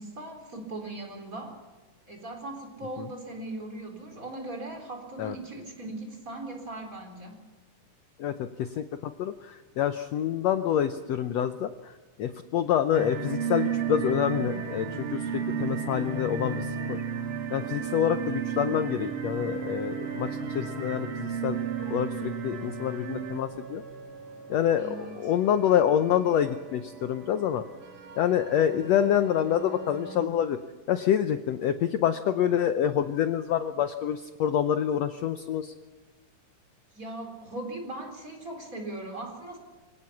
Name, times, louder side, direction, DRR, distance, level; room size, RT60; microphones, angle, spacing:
voice 1, 0.0-1.6 2.1-7.4 24.8-25.1 36.9-39.6, right 2 dB, 25° right, 3 dB, 4.2 m, -39 dB
voice 2, 8.2-17.0 17.5-20.3 20.5-23.8 24.5-27.6 28.2-30.6 30.9-35.7, left 10 dB, 70° left, 9 dB, 1.7 m, -27 dB
sound 1, 12.9-23.4, right 7 dB, 75° right, 3.7 m, -32 dB
sound 2, 19.9-30.3, right 4 dB, 60° right, 4.4 m, -46 dB
25.5 x 17.5 x 7.2 m, 1.3 s
omnidirectional pair, 3.8 m